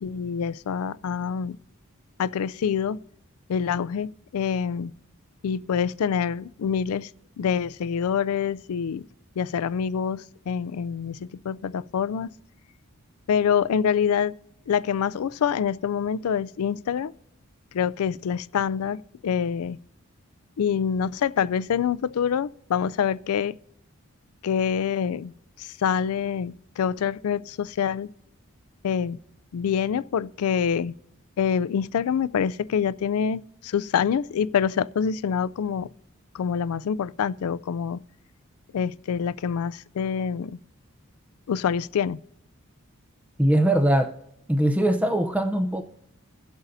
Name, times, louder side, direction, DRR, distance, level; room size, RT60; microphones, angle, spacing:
voice 1, 0.0-1.6 2.2-3.0 3.5-4.9 5.4-7.1 7.4-9.1 9.4-12.3 13.3-14.3 14.7-17.1 17.7-19.8 20.6-23.6 24.4-25.3 25.6-28.1 28.8-29.2 29.5-30.9 31.4-35.9 36.3-38.0 38.7-40.6 41.5-42.2, left 7 dB, 85° left, 0.4 m, -26 dB
voice 2, 43.4-44.1 44.5-45.8, right 1 dB, 5° right, 0.5 m, -21 dB
23.0 x 8.1 x 2.6 m
head